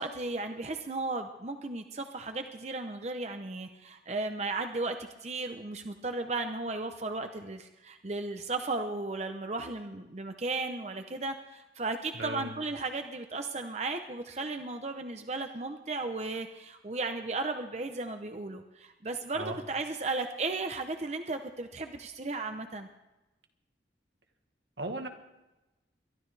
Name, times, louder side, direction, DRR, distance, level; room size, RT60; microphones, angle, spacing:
voice 1, 0.0-5.0 5.2-22.9, right 3 dB, 35° right, 6 dB, 0.8 m, -35 dB
voice 2, 12.1-12.5 19.3-19.6 24.8-25.1, right 2 dB, 80° right, 4 dB, 1.7 m, -36 dB
22.5 x 12.5 x 3.4 m, 1.0 s
head